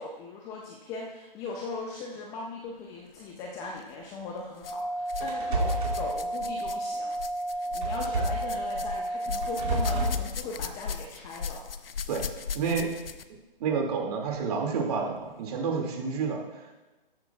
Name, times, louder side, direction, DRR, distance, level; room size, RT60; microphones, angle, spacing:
voice 1, 0.0-7.2 7.4-11.7, left 3 dB, 10° left, 0 dB, 0.5 m, -39 dB
sound 1, 3.6-3.8 4.6-5.3 5.6-13.4 14.3-14.4 15.2-15.3, left 6 dB, 75° left, 0.7 m, -38 dB
sound 2, 4.6-10.1, right 1 dB, 40° left, 3.8 m, -32 dB
sound 3, 5.2-6.0 7.8-8.5 9.4-10.2, right 1 dB, 55° right, 2.6 m, -29 dB
voice 2, 12.5-12.9 13.6-16.7, right 5 dB, 40° right, 0 dB, 2.4 m, -29 dB
14.0 x 11.5 x 2.4 m, 1.1 s
figure-of-eight pair, 140°, 29 cm